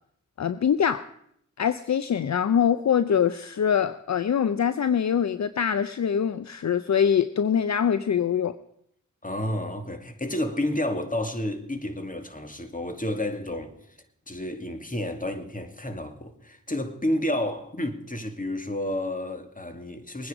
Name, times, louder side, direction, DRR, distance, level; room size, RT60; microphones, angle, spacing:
voice 1, 0.4-1.0 1.6-8.5, left 8 dB, 60° left, 0.6 m, -24 dB
voice 2, 9.2-13.7 14.3-20.3, left 1 dB, 25° left, 2.2 m, -30 dB
21.5 x 9.8 x 5.0 m
cardioid pair, 45°, 32 cm